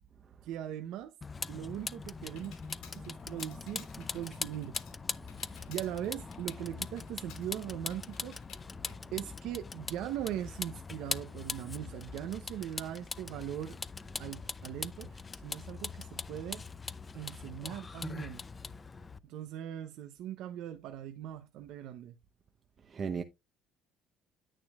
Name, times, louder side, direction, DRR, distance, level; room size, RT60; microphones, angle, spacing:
voice 1, 0.4-1.1 1.5-2.5 2.9-4.7 5.7-8.4 9.1-13.8 14.2-16.6 17.1-18.4 19.2-22.2, right 11 dB, 70° right, 0.8 m, -40 dB
Vehicle, 1.2-19.2, left 4 dB, 25° left, 0.6 m, -42 dB
Computer keyboard, 1.7-10.0, left 8 dB, 75° left, 4.7 m, -58 dB
voice 2, 22.8-23.2, right 6 dB, 45° right, 0.9 m, -37 dB
10.0 x 8.8 x 2.4 m
supercardioid pair, 80°, 0 cm